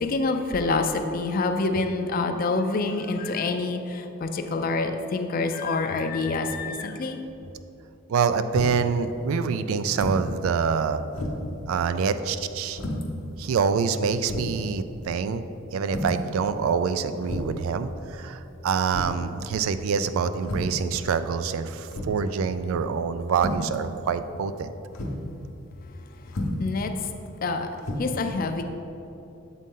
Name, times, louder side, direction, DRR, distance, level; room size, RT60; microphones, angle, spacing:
voice 1, 0.0-7.2 26.6-26.9 27.4-27.7 28.0-28.6, left 3 dB, 45° left, 6 dB, 0.4 m, -26 dB
voice 2, 8.1-11.0 11.7-12.8 13.4-15.4 15.7-24.7, right 6 dB, 80° right, 12 dB, 0.3 m, -26 dB
sound 1, 8.5-8.9 9.9-10.3 10.7-10.8 11.2-11.6 12.7-13.1 13.8-13.9 14.3-14.6 15.9-16.3 17.2-17.6 18.9-19.3 20.4-20.8 21.9-22.3 23.3-23.7 24.9-25.2 26.3-26.7 27.8-28.0, left 1 dB, 70° left, 0.8 m, -31 dB
7.3 x 4.0 x 3.7 m, 2.9 s
head